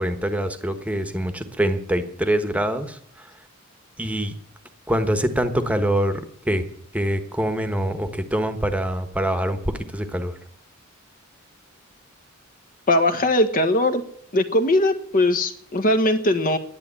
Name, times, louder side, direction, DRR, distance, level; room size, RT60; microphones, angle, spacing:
voice 1, 0.0-3.0 4.0-4.3 4.9-6.7 6.9-10.3, right 1 dB, 5° right, 8 dB, 1.3 m, -24 dB
voice 2, 12.9-14.0 14.3-16.6, left 1 dB, 40° left, 8 dB, 1.4 m, -20 dB
10.5 x 10.5 x 8.7 m, 0.67 s
head